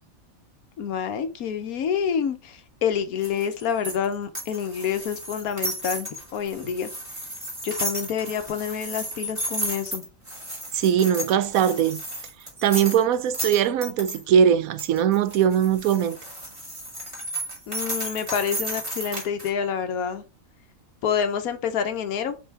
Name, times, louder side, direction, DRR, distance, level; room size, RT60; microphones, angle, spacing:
voice 1, 0.8-6.9 7.6-10.0 17.7-20.2 21.0-22.4, left 7 dB, 90° left, 1.3 m, -28 dB
sound 1, 3.2-14.2 14.8-19.5, right 1 dB, 20° right, 2.7 m, -33 dB
voice 2, 10.7-12.0 12.6-16.2, right 8 dB, 85° right, 1.1 m, -21 dB
5.5 x 3.7 x 4.7 m
omnidirectional pair, 1.5 m